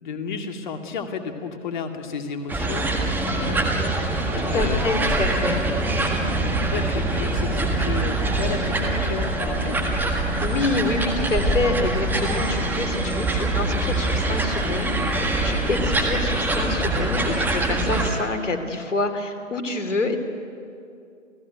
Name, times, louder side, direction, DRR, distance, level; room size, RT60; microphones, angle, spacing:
voice 1, 0.0-2.9 3.3-3.6 4.3-5.2 6.3-9.8, left 5 dB, 35° left, 6 dB, 2.3 m, -32 dB
sound 1, 2.5-18.1, right 2 dB, 5° right, 1.7 m, -24 dB
voice 2, 4.4-5.6 10.4-20.2, left 2 dB, 65° left, 8 dB, 3.0 m, -27 dB
29.5 x 15.0 x 9.2 m, 2.5 s
figure-of-eight pair, 140°, 39 cm